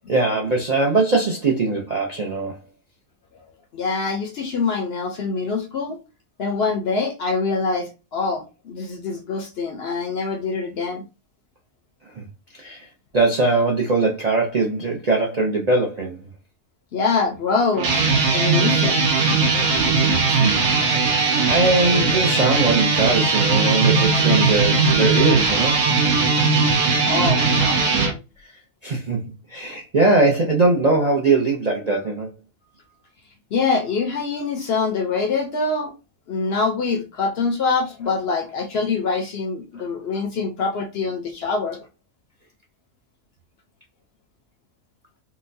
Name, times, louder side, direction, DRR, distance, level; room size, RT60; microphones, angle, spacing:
voice 1, 0.1-2.6 12.2-12.3 12.6-12.8 13.1-16.2 20.3-20.5 20.9-21.2 21.5-25.8 28.8-29.2 29.5-32.3, right 3 dB, 50° right, 0.5 m, -21 dB
voice 2, 3.7-6.0 6.4-11.0 16.9-18.0 18.3-19.1 27.1-27.9 33.5-35.9 36.3-41.8, left 4 dB, 60° left, 0.7 m, -24 dB
sound 1, 17.7-28.1, right 4 dB, 80° right, 1.2 m, -19 dB
3.8 x 2.2 x 2.6 m
omnidirectional pair, 1.4 m